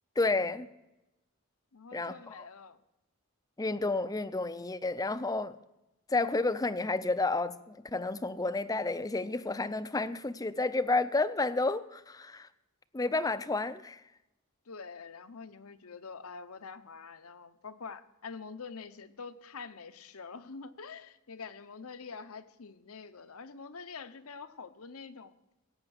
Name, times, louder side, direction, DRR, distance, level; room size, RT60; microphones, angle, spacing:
voice 1, 0.2-0.7 1.9-2.5 3.6-5.6 6.1-12.5 12.9-14.0, left 3 dB, 15° left, 13 dB, 0.5 m, -31 dB
voice 2, 1.7-2.8 14.7-25.3, left 5 dB, 75° left, 12 dB, 0.8 m, -46 dB
17.0 x 8.7 x 6.5 m, 0.94 s
head